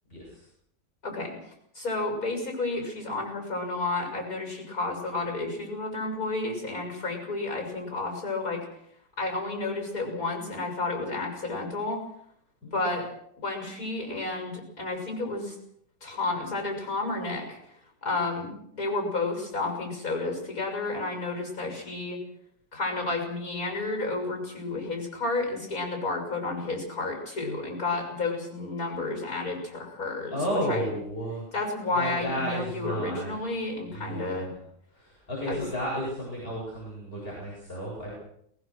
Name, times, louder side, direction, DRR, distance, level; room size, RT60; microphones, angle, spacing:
voice 1, 0.1-0.5 12.6-12.9 30.3-31.5 31.9-33.4 33.8-34.6 34.9-38.1, equal, 30° left, -6 dB, 8.4 m, -33 dB
voice 2, 1.0-1.4 1.7-8.6 9.2-12.0 12.7-13.1 13.4-15.5 16.0-17.6 18.0-22.2 22.7-30.4 30.7-30.9 31.5-34.5 35.5-35.6, left 3 dB, 55° left, 3 dB, 7.3 m, -31 dB
22.5 x 20.5 x 6.4 m, 0.69 s
omnidirectional pair, 1.9 m